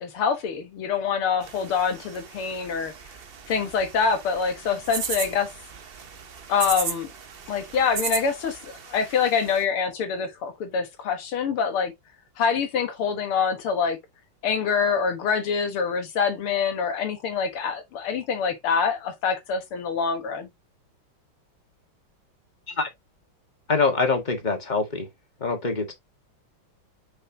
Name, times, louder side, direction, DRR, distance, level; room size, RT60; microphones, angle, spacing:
voice 1, 0.0-2.9 3.5-5.5 6.5-7.1 7.5-11.9 12.4-14.0 14.4-20.5, left 6 dB, 90° left, 2.3 m, -25 dB
sound 1, 1.4-9.6, right 6 dB, 65° right, 0.5 m, -36 dB
voice 2, 23.7-25.1 25.4-25.9, left 4 dB, 25° left, 1.4 m, -24 dB
6.5 x 5.4 x 2.8 m
omnidirectional pair, 2.3 m